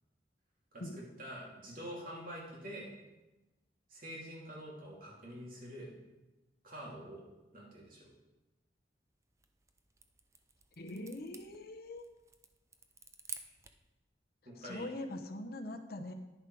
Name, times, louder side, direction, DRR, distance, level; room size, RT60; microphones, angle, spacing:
voice 1, 0.7-2.9 3.9-5.9 6.6-7.2 7.5-8.1 13.5-13.6 14.4-14.8, equal, 55° right, -4 dB, 2.9 m, -46 dB
sound 1, 9.2-13.9, right 4 dB, 15° right, 0.6 m, -52 dB
voice 2, 10.8-12.0 14.6-16.1, left 1 dB, 60° left, 6 dB, 0.9 m, -42 dB
10.5 x 7.0 x 4.8 m, 1.1 s
head